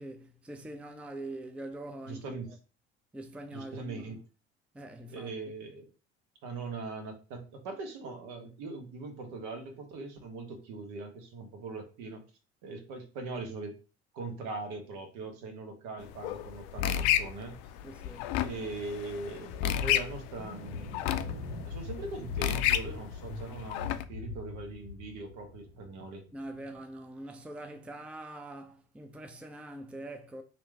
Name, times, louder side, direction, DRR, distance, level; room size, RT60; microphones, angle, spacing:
voice 1, 0.0-2.6 3.1-4.2 4.7-5.3 17.8-18.4 26.3-30.4, right 1 dB, 5° right, 0.4 m, -43 dB
voice 2, 2.1-2.5 3.5-4.2 5.1-5.9 6.4-12.2 12.6-13.8 14.1-17.6 18.4-21.0 21.6-26.2, right 3 dB, 60° right, 1.0 m, -41 dB
sound 1, 16.0-24.0, left 11 dB, 65° left, 0.4 m, -32 dB
Thunder, 20.3-26.8, left 4 dB, 85° right, 1.2 m, -42 dB
3.0 x 2.6 x 3.3 m
figure-of-eight pair, 55°, 32 cm